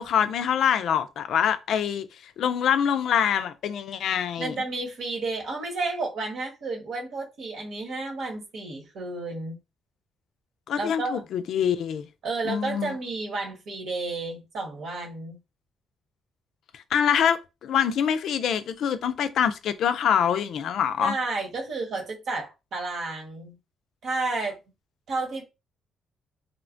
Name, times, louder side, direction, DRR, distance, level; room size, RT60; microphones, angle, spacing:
voice 1, 0.0-2.1 2.4-4.6 10.7-12.1 12.4-12.9 16.9-21.1, left 8 dB, 70° left, 0.3 m, -25 dB
voice 2, 4.4-9.6 10.7-11.2 12.2-15.4 21.0-23.5 24.0-24.6 25.1-25.4, right 3 dB, 70° right, 1.1 m, -31 dB
3.1 x 2.1 x 2.5 m
cardioid pair, 100°, 0 cm